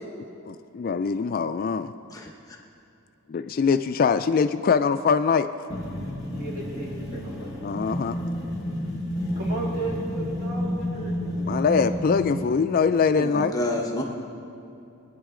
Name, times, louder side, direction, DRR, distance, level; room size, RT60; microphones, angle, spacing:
voice 1, 0.5-1.9 3.3-5.7 7.6-8.2 11.5-13.6, left 5 dB, 45° left, 10 dB, 0.3 m, -23 dB
sound 1, 5.7-12.5, left 1 dB, 20° right, 1.6 m, -30 dB
voice 2, 6.4-7.6 9.3-11.1, right 2 dB, 40° right, -5 dB, 2.9 m, -34 dB
voice 3, 13.2-14.0, left 1 dB, 15° left, -1 dB, 1.0 m, -28 dB
22.5 x 9.6 x 3.7 m, 2.7 s
head